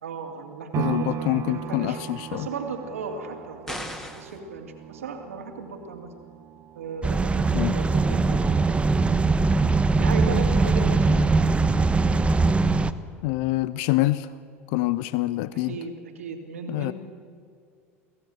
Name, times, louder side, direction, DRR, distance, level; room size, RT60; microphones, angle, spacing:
voice 1, 0.0-2.0 2.3-6.1 6.7-8.9 10.0-11.2 15.5-16.9, right 4 dB, 80° right, 4 dB, 2.7 m, -36 dB
sound 1, 0.7-8.8 9.3-9.4, right 10 dB, 45° right, 0.9 m, -37 dB
voice 2, 0.8-2.5 7.5-7.7 13.2-14.3 14.7-15.8 16.7-16.9, left 18 dB, 60° left, 16 dB, 0.6 m, -25 dB
sound 2, 3.7-4.4, equal, 5° left, 2.6 m, -36 dB
sound 3, 7.0-12.9, right 3 dB, 15° right, 1.0 m, -21 dB
24.5 x 16.5 x 7.8 m, 2.3 s
hypercardioid pair, 80°, 7 cm